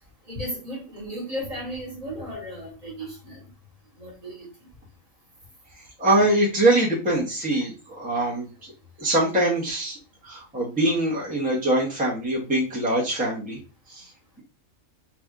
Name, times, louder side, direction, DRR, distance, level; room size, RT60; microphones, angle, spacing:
voice 1, 0.3-3.4 4.0-4.4, equal, 30° right, -2 dB, 1.4 m, -35 dB
voice 2, 5.7-8.7 9.0-10.0 10.2-13.6 13.9-14.1, right 1 dB, 5° right, -5 dB, 0.8 m, -23 dB
4.0 x 3.2 x 2.4 m, 0.33 s
omnidirectional pair, 1.4 m